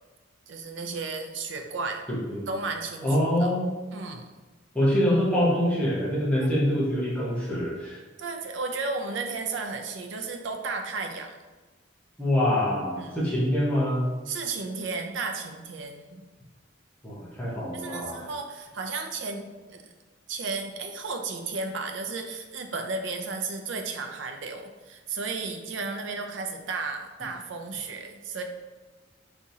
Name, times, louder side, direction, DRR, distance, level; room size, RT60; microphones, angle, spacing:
voice 1, 0.5-2.0 2.5-3.5 3.9-4.3 6.4-6.5 8.2-11.3 13.0-13.2 14.3-16.2 17.7-19.9 20.3-28.4, right 4 dB, 70° right, 4 dB, 0.4 m, -34 dB
voice 2, 2.1-2.4 3.0-3.7 4.7-8.0 12.2-14.1 17.0-18.2, left 1 dB, 5° left, -7 dB, 0.9 m, -25 dB
3.5 x 2.9 x 2.7 m, 1.3 s
head